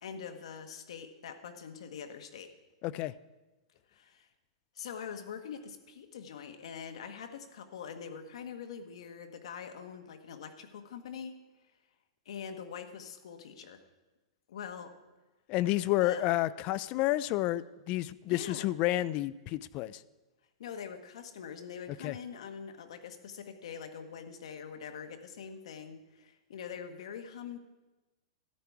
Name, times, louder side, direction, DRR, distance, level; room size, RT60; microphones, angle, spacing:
voice 1, 0.0-2.5 3.9-4.3 4.7-11.4 12.2-13.8 14.5-14.9 16.0-16.2 18.3-18.7 20.6-27.6, left 7 dB, 75° left, 6 dB, 1.2 m, -44 dB
voice 2, 2.8-3.1 15.5-20.0 22.0-22.2, left 15 dB, 35° left, 18 dB, 0.3 m, -30 dB
13.5 x 9.9 x 4.7 m, 1.1 s
supercardioid pair, 160°, 3 cm